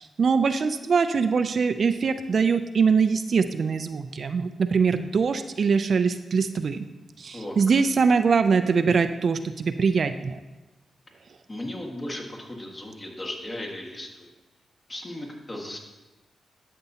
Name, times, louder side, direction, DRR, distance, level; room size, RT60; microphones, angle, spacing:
voice 1, 0.0-6.8 7.2-10.4, right 5 dB, 60° right, 9 dB, 0.4 m, -23 dB
voice 2, 11.5-14.3 14.9-15.8, left 1 dB, 30° left, 0 dB, 1.7 m, -36 dB
12.0 x 6.7 x 2.8 m, 1.1 s
cardioid pair, 65°, 0 cm